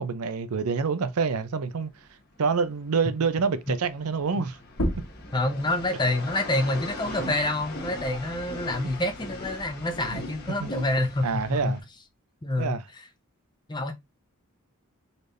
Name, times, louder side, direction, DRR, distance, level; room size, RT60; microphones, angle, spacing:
voice 1, 0.0-1.9 2.4-4.6 7.2-7.3 10.1-10.2 10.6-10.8 11.2-11.8 12.6-12.8, right 5 dB, 85° right, 0.5 m, -27 dB
sound 1, 0.9-11.8, left 1 dB, 50° left, 1.2 m, -40 dB
sound 2, 4.7-9.9 10.3-12.1, equal, 85° left, 1.4 m, -37 dB
voice 2, 5.3-11.7 12.4-12.8 13.7-13.9, left 1 dB, 20° left, 0.7 m, -27 dB
4.2 x 3.3 x 2.6 m
head